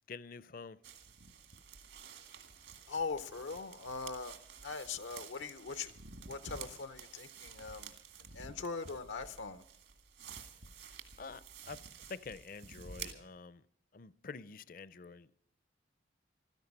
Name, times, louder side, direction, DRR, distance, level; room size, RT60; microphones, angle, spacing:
voice 1, 0.1-0.8 11.2-13.6 13.9-15.3, left 4 dB, 45° left, 0.5 m, -48 dB
sound 1, 0.8-13.1, right 6 dB, 75° right, 2.0 m, -51 dB
voice 2, 2.9-4.4 4.6-5.9 6.3-7.9 8.3-9.6, left 4 dB, 85° left, 0.7 m, -41 dB
15.5 x 13.5 x 5.3 m
head